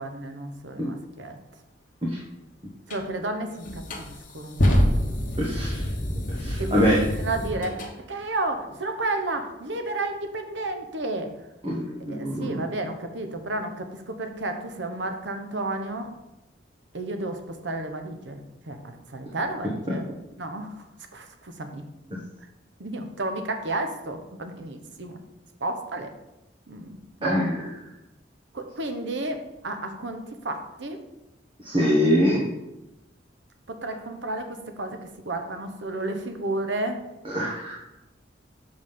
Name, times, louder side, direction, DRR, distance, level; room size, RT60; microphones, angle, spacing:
voice 1, 0.0-1.4 2.9-5.2 6.6-11.3 12.1-16.1 16.9-18.4 18.7-20.1 20.4-20.8 21.1-21.8 22.8-25.2 25.6-26.1 26.7-27.4 28.5-31.0 33.7-35.0 35.2-37.0, right 2 dB, 75° right, 6 dB, 0.9 m, -32 dB
sound 1, 2.9-3.0 3.6-7.9, equal, 45° left, 1.2 m, -26 dB
voice 2, 5.4-5.9 6.3-7.0 11.6-12.6 19.9-20.0 27.2-27.6 31.6-32.5 37.2-37.8, equal, 25° right, -4 dB, 1.1 m, -24 dB
6.1 x 5.2 x 5.6 m, 0.93 s
head